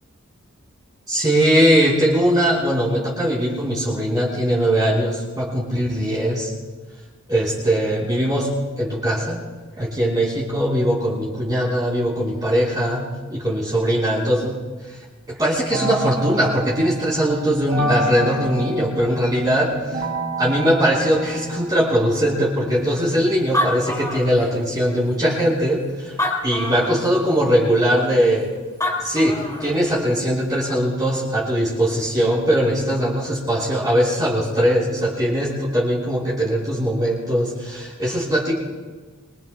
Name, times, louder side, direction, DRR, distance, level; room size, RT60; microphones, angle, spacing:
voice 1, 1.1-6.5 7.3-9.4 9.8-15.0 15.3-20.1 20.4-26.2 26.4-28.5 29.0-38.6, equal, 20° right, -6 dB, 3.6 m, -20 dB
sound 1, 15.7-23.9, right 1 dB, 75° right, 2.1 m, -29 dB
Animal, 23.1-23.2 23.4-24.8 25.4-25.5 26.1-27.1 28.5-28.6 28.8-29.8, left 1 dB, 15° left, 3.6 m, -25 dB
26.0 x 23.5 x 2.2 m, 1.4 s
head